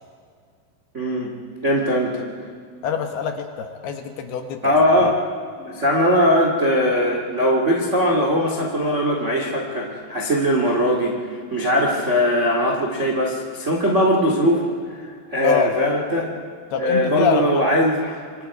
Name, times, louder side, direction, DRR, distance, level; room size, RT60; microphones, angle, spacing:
voice 1, 0.9-1.3 1.6-2.3 4.6-5.2 5.6-16.3 16.8-18.2, equal, 85° right, 0 dB, 0.6 m, -20 dB
voice 2, 2.8-4.7 15.4-15.7 16.7-17.6, left 6 dB, 70° left, 5 dB, 2.8 m, -25 dB
26.5 x 26.5 x 4.9 m, 2.1 s
omnidirectional pair, 5.6 m